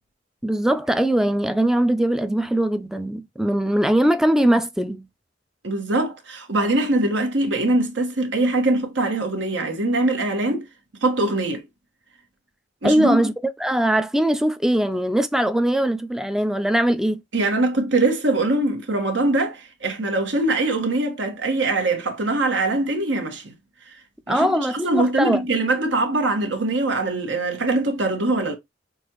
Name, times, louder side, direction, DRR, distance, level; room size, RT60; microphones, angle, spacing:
voice 1, 0.4-5.1 12.8-17.2 24.3-25.4, right 1 dB, 5° right, 0.3 m, -21 dB
voice 2, 5.6-10.6 11.0-11.6 12.8-13.2 17.3-23.5 24.3-24.6 24.8-28.5, right 2 dB, 85° right, 1.4 m, -22 dB
6.0 x 2.5 x 2.9 m
head